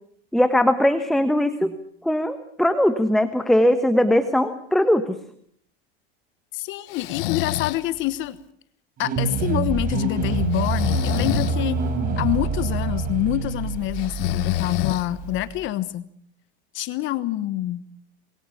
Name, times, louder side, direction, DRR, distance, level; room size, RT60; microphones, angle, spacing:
voice 1, 0.3-1.7 2.0-5.2, left 1 dB, ahead, 9 dB, 1.1 m, -20 dB
voice 2, 6.5-8.4 9.0-11.8 12.2-16.1 16.7-17.8, left 14 dB, 40° left, 14 dB, 1.2 m, -26 dB
Breathing, 6.9-7.8 10.5-11.6 14.0-15.4, left 17 dB, 60° left, 1.0 m, -27 dB
sound 1, 9.0-15.6, right 4 dB, 25° right, 4.4 m, -26 dB
27.0 x 22.0 x 7.1 m, 0.64 s
supercardioid pair, 140°, 32 cm